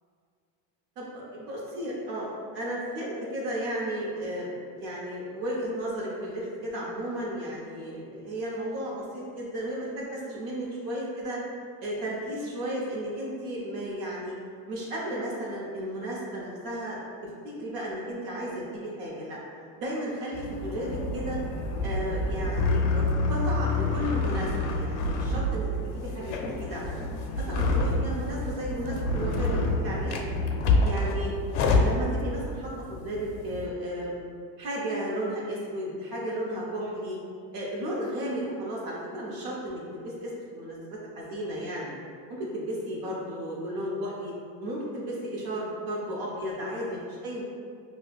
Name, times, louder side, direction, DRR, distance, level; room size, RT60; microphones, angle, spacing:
voice 1, 1.0-11.4 11.8-14.3 14.7-17.0 17.6-19.4 19.8-21.4 21.8-26.9 27.4-30.2 30.8-34.2 34.6-37.2 37.5-41.9 42.3-44.3 44.6-47.4, equal, 55° right, -5 dB, 0.7 m, -34 dB
sound 1, 20.3-33.7, left 2 dB, 75° left, 0.5 m, -28 dB
4.9 x 2.1 x 2.3 m, 2.3 s
cardioid pair, 140°, 45 cm